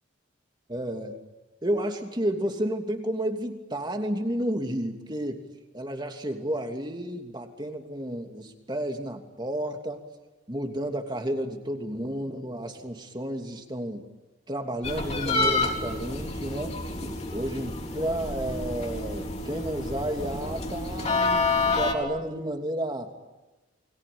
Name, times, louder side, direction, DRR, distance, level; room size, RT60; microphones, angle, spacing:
voice 1, 0.7-1.1 1.6-5.4 5.7-10.0 10.5-14.0 14.5-23.1, right 1 dB, 20° right, 4 dB, 2.9 m, -31 dB
sound 1, 14.8-21.9, left 3 dB, 35° left, 3.8 m, -29 dB
29.5 x 22.5 x 8.8 m, 1.1 s
head